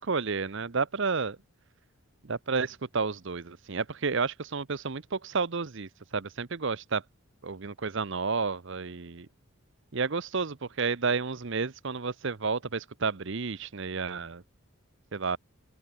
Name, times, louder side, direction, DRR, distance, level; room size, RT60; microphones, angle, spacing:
voice 1, 0.0-1.4 2.2-7.0 7.4-9.3 9.9-14.4 15.1-15.4, right 4 dB, 55° right, 0.8 m, -31 dB
open air
head